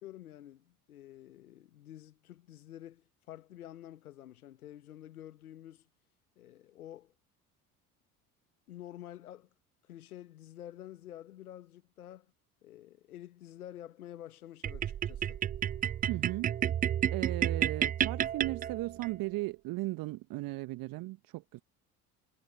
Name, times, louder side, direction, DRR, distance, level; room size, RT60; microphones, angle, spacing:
voice 1, 0.0-5.9 6.4-7.1 8.7-9.5 9.9-12.3 12.6-15.4, left 12 dB, 75° left, 1.7 m, -49 dB
sound 1, 14.6-19.1, right 10 dB, 20° right, 0.4 m, -31 dB
voice 2, 16.1-16.5 17.1-21.6, right 20 dB, 50° right, 1.3 m, -36 dB
figure-of-eight pair, 60°, 44 cm